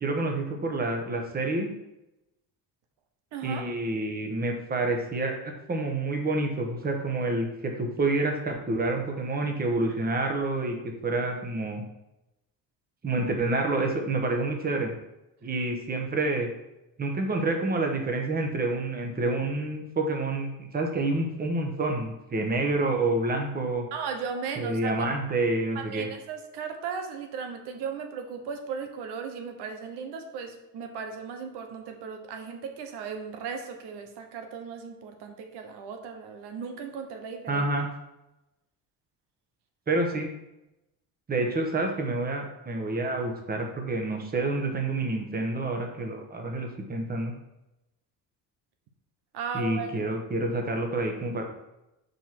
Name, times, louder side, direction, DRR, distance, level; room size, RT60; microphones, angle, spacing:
voice 1, 0.0-1.7 3.4-5.3 5.7-11.8 13.0-14.9 15.4-16.5 17.0-23.9 24.6-26.1 37.5-37.9 39.9-40.3 41.3-47.3 49.5-51.4, right 2 dB, 25° right, 2 dB, 1.1 m, -28 dB
voice 2, 3.3-3.7 23.9-25.1 25.7-37.6 49.3-50.1, right 6 dB, 90° right, 5 dB, 1.1 m, -36 dB
5.3 x 4.5 x 6.0 m, 0.93 s
cardioid pair, 150°, 39 cm